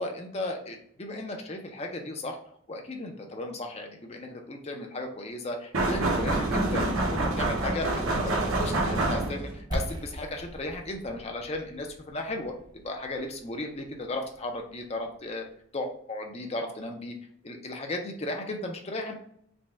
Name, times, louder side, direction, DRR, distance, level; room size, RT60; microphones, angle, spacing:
voice 1, 0.0-2.4 2.7-15.4 15.7-17.1 17.4-19.1, left 2 dB, 30° left, 3 dB, 0.6 m, -35 dB
sound 1, 5.7-9.6, right 2 dB, 80° right, 1.0 m, -27 dB
sound 2, 9.7-15.4, equal, 20° right, 0.5 m, -40 dB
5.1 x 2.3 x 3.4 m, 0.68 s
head